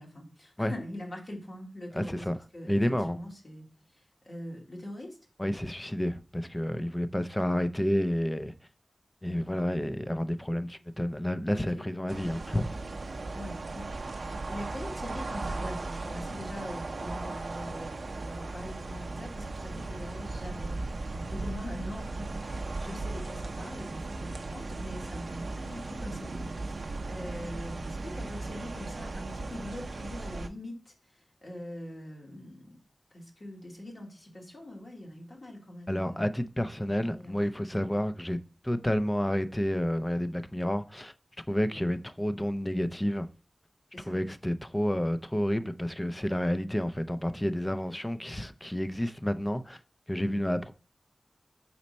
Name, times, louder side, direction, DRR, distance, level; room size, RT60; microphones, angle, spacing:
voice 1, 0.0-2.3 2.5-5.2 9.2-9.6 11.5-11.8 13.3-13.9 14.2-32.8 33.1-36.2 37.0-37.5 37.9-38.0 43.9-44.1 50.2-50.4, left 1 dB, 55° left, 2.0 m, -43 dB
voice 2, 1.9-2.4 2.7-3.2 5.4-8.5 9.2-12.8 35.9-38.4 38.6-41.1 41.5-43.3 44.1-49.8 50.1-50.7, equal, 15° left, 0.4 m, -30 dB
sound 1, 12.1-30.5, right 3 dB, 70° right, 0.5 m, -37 dB
4.3 x 4.2 x 5.2 m
wide cardioid pair, 90°, 0 cm